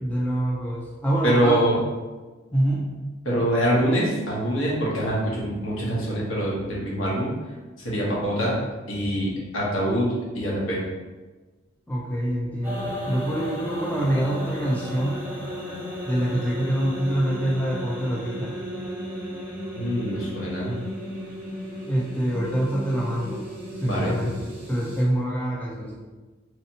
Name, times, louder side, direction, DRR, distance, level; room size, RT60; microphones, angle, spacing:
voice 1, 0.0-1.7 2.5-3.0 11.9-15.2 16.1-18.5 21.9-23.5 23.8-25.9, right 1 dB, 5° left, -4 dB, 0.3 m, -26 dB
voice 2, 1.2-1.7 3.2-7.3 7.8-8.6 8.9-10.8 19.7-20.8 23.8-24.2, equal, 75° left, -6 dB, 1.0 m, -24 dB
sound 1, 12.6-25.0, equal, 10° right, 0.7 m, -34 dB
3.2 x 2.7 x 2.7 m, 1.3 s
head